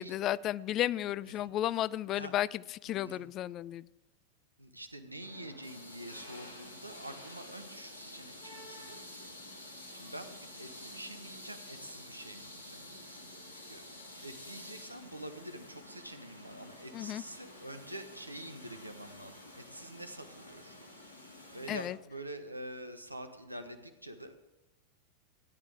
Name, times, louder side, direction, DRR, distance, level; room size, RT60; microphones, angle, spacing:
voice 1, 0.0-3.9 16.9-17.2 21.7-22.0, left 13 dB, 35° left, 0.3 m, -33 dB
voice 2, 2.8-3.3 4.6-9.3 9.9-13.8 14.2-20.9 21.5-24.3, right 1 dB, 85° right, 1.1 m, -46 dB
sound 1, 5.2-21.9, left 1 dB, 75° left, 2.4 m, -50 dB
17.0 x 10.0 x 3.5 m
figure-of-eight pair, 90°, 0 cm